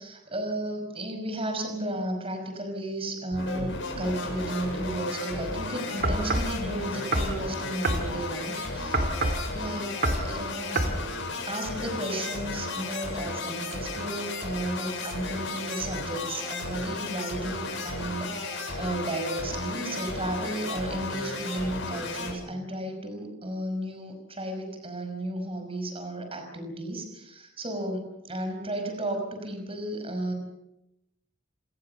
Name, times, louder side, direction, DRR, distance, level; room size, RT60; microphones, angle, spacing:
voice 1, 0.0-9.1 9.5-10.8 11.4-30.3, right 1 dB, 30° right, 6 dB, 5.4 m, -34 dB
sound 1, 3.3-22.3, left 2 dB, 65° left, 7.7 m, -34 dB
sound 2, 6.0-6.5 7.1-7.4 7.8-8.1 8.9-9.5 10.0-10.3 10.8-11.0, right 2 dB, 50° right, 3.4 m, -26 dB
28.0 x 20.5 x 6.9 m, 0.86 s
head